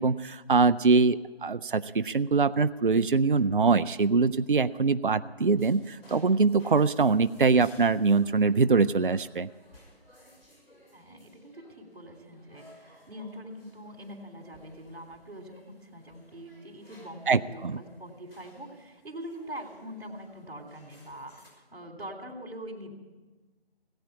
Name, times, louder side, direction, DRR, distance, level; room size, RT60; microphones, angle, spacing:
voice 1, 0.0-9.5 17.3-17.8, right 4 dB, 55° right, 13 dB, 0.5 m, -23 dB
sound 1, 5.5-21.5, left 1 dB, 65° left, 5.6 m, -58 dB
voice 2, 10.9-22.9, equal, 75° right, -2 dB, 3.4 m, -43 dB
17.5 x 8.8 x 8.4 m, 1.3 s
figure-of-eight pair, 165°, 31 cm